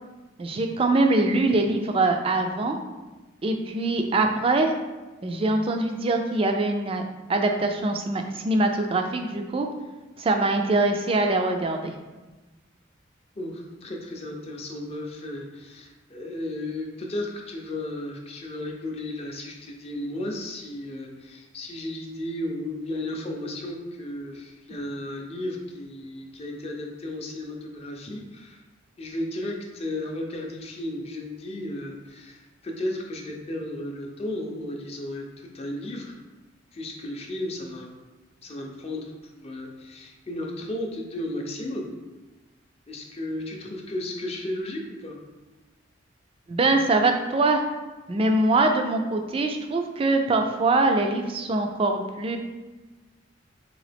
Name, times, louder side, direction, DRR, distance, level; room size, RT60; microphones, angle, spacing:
voice 1, 0.4-2.8 3.4-4.7 5.2-7.0 7.3-9.7 10.2-11.9 46.5-47.6 48.1-52.4, right 2 dB, 30° right, 4 dB, 0.3 m, -23 dB
voice 2, 13.4-28.6 29.0-36.2 36.7-37.9 38.4-41.9 42.9-45.2, left 1 dB, 30° left, 0 dB, 0.5 m, -34 dB
3.8 x 2.8 x 3.4 m, 1.2 s
head